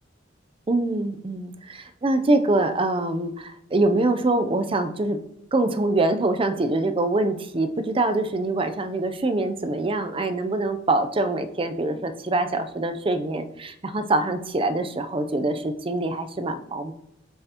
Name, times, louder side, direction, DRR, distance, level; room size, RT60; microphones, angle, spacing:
voice 1, 0.7-1.5 2.0-5.2 5.5-16.9, right 2 dB, 30° right, 9 dB, 0.5 m, -24 dB
7.7 x 5.6 x 2.9 m, 0.78 s
head